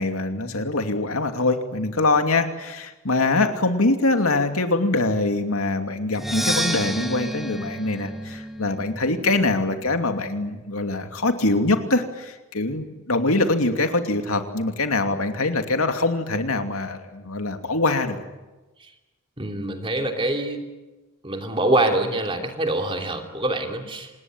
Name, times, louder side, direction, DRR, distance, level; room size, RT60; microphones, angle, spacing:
voice 1, 0.0-18.2, left 2 dB, 90° left, 6 dB, 2.7 m, -23 dB
Percussion, 6.1-9.9, equal, ahead, 1.7 m, -30 dB
voice 2, 19.4-20.7 21.2-24.1, right 1 dB, 25° right, 4 dB, 3.0 m, -25 dB
26.5 x 20.0 x 9.5 m, 1.1 s
head